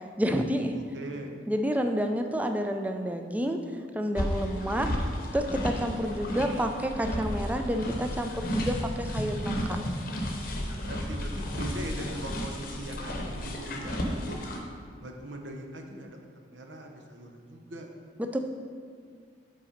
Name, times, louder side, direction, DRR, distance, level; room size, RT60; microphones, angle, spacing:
voice 1, 0.2-0.7 1.5-3.6 3.9-4.9 5.3-9.6 18.2-18.4, equal, 10° right, 5 dB, 0.3 m, -29 dB
voice 2, 0.7-1.3 10.5-14.5 15.0-17.9, right 1 dB, 90° right, 3 dB, 0.8 m, -41 dB
sound 1, 4.2-14.6, equal, 55° left, 0.8 m, -33 dB
5.5 x 4.2 x 5.1 m, 2.1 s
head